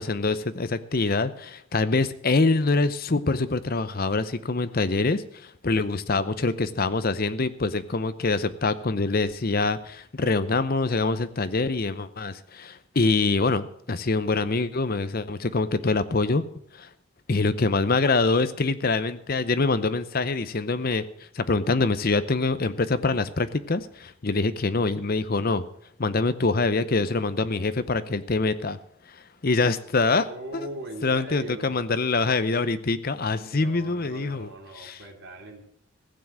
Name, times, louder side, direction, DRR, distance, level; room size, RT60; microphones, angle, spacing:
voice 1, 0.0-16.4 16.8-16.9 17.3-21.1 21.3-25.7 26.0-28.8 29.4-30.2 31.0-34.5 34.8-35.0, left 3 dB, 45° left, 13 dB, 0.7 m, -25 dB
voice 2, 30.1-31.8 33.5-35.6, right 1 dB, 55° right, 2 dB, 2.7 m, -40 dB
16.0 x 7.3 x 7.6 m, 0.67 s
head